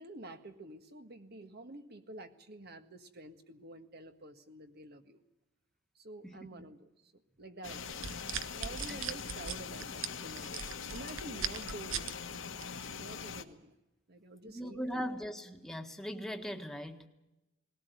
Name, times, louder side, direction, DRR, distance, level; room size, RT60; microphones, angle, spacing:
voice 1, 0.0-5.2 6.0-7.1 7.4-8.1 8.5-10.6 10.9-12.1 12.9-13.8 14.1-15.0, right 2 dB, 55° right, 7 dB, 1.7 m, -49 dB
voice 2, 6.2-6.7 8.9-9.0 14.4-17.1, equal, ahead, 4 dB, 1.6 m, -40 dB
sound 1, 7.6-13.4, left 6 dB, 75° left, 1.4 m, -42 dB
sound 2, 7.9-12.1 12.6-12.9, right 8 dB, 80° right, 1.1 m, -38 dB
20.0 x 17.5 x 9.4 m, 0.98 s
head